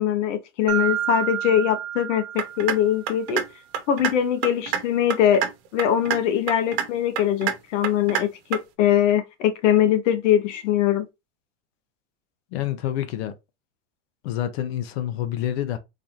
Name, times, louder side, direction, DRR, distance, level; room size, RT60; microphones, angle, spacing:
voice 1, 0.0-3.4 3.9-5.4 5.7-11.0, left 10 dB, 85° left, 0.9 m, -22 dB
Mallet percussion, 0.7-3.2, right 10 dB, 35° right, 0.5 m, -29 dB
sound 1, 2.4-2.8 3.1-3.4 3.7-4.1 4.4-4.8 5.1-5.5 5.8-6.2 6.5-6.9 7.2-7.5 7.8-8.2 8.5-8.6, right 9 dB, 55° right, 1.0 m, -25 dB
voice 2, 12.5-13.3 14.2-15.8, left 12 dB, 60° left, 0.6 m, -27 dB
4.0 x 2.5 x 3.0 m
supercardioid pair, 155°, 36 cm